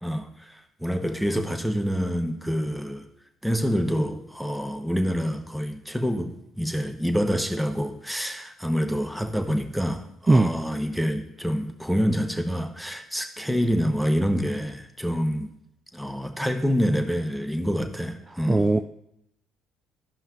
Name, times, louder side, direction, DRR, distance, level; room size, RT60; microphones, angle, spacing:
voice 1, 0.0-3.1 3.4-15.5 15.9-18.7, equal, ahead, 6 dB, 0.9 m, -27 dB
voice 2, 18.5-18.8, right 2 dB, 20° right, 8 dB, 0.4 m, -18 dB
12.0 x 5.5 x 2.5 m, 0.76 s
hypercardioid pair, 50°, 0 cm